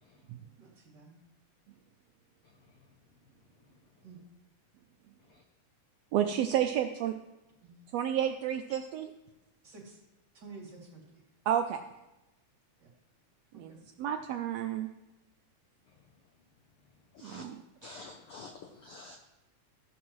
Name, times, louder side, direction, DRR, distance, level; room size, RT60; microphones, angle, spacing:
voice 1, 0.6-1.1 4.0-4.2 7.6-7.7 9.6-10.0 10.3-11.2 12.8-12.9 13.5-13.9, right 4 dB, 35° right, -2 dB, 2.9 m, -51 dB
voice 2, 6.1-7.1 7.9-9.1 11.5-11.8 13.5-13.7 14.0-14.9 17.2-18.0, right 10 dB, 85° right, 6 dB, 1.4 m, -31 dB
voice 3, 17.1-17.4 17.8-19.2, left 3 dB, 80° left, 4 dB, 1.2 m, -49 dB
14.5 x 12.0 x 3.1 m, 1.0 s
omnidirectional pair, 3.5 m